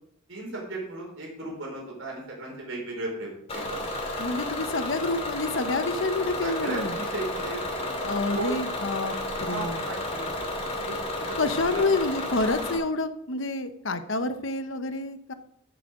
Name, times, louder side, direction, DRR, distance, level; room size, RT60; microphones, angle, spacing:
voice 1, 0.3-3.9 6.4-8.5 9.4-11.4 11.6-11.8, right 2 dB, 80° right, -1 dB, 4.6 m, -36 dB
Bus / Engine, 3.5-12.8, left 1 dB, 30° left, 2.4 m, -32 dB
voice 2, 4.2-7.0 8.0-9.1 9.4-9.8 11.4-15.3, left 3 dB, 70° left, 9 dB, 0.9 m, -28 dB
14.0 x 7.5 x 3.8 m, 0.72 s
head